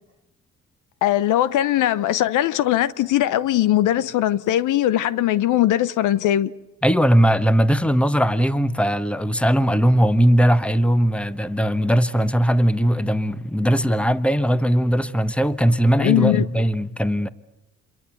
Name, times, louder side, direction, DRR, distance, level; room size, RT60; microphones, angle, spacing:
voice 1, 1.0-6.5 16.0-16.4, left 13 dB, 80° left, 0.8 m, -20 dB
voice 2, 6.8-17.3, equal, 5° left, 1.1 m, -19 dB
27.5 x 23.0 x 7.9 m
cardioid pair, 90°, 30 cm